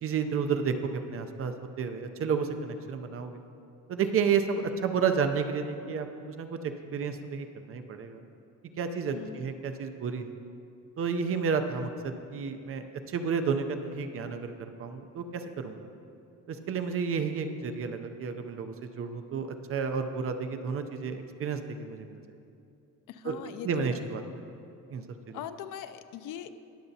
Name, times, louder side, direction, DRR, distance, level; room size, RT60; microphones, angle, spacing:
voice 1, 0.0-3.4 3.9-8.2 8.8-10.3 11.0-15.9 16.5-22.2 23.2-23.4 23.6-24.2 24.9-25.4, right 6 dB, 40° right, 7 dB, 0.5 m, -31 dB
voice 2, 9.1-9.4 23.1-24.0 25.3-26.5, left 10 dB, 65° left, 12 dB, 0.5 m, -40 dB
20.5 x 6.8 x 2.7 m, 2.6 s
cardioid pair, 170°, 34 cm